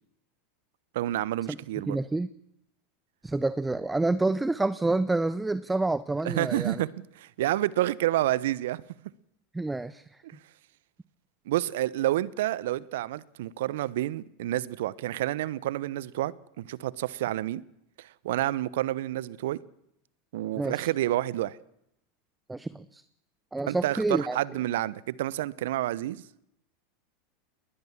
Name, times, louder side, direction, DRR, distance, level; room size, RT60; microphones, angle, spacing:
voice 1, 0.9-2.0 6.2-8.8 10.2-10.3 11.5-17.6 18.0-19.6 20.3-21.6 23.7-26.2, right 14 dB, 70° right, 0.9 m, -29 dB
voice 2, 1.9-2.3 3.2-6.8 9.5-10.2 20.6-20.9 22.5-23.0 23.5-24.4, right 2 dB, 10° right, 0.9 m, -28 dB
20.0 x 20.0 x 7.4 m
hypercardioid pair, 90°, 0 cm